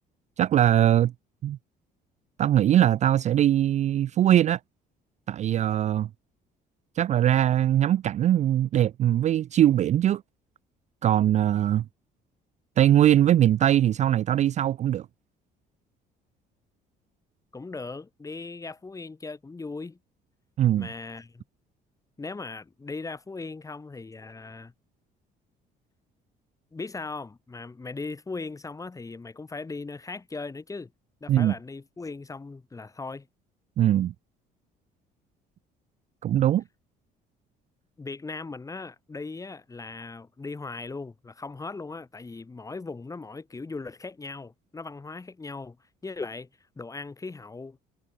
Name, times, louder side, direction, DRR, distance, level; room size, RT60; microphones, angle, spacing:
voice 1, 0.4-1.1 1.4-1.6 2.4-4.6 5.3-6.1 7.0-10.2 11.0-11.8 12.8-15.1 20.6-20.9 31.3-31.5 33.8-34.1 36.2-36.6, right 11 dB, 45° right, 0.4 m, -21 dB
voice 2, 17.5-20.0 20.8-21.4 22.2-24.7 26.7-30.9 31.2-33.3 38.0-45.8 46.0-46.5 46.8-47.8, left 3 dB, 20° left, 2.9 m, -38 dB
cardioid pair, 110°, 17 cm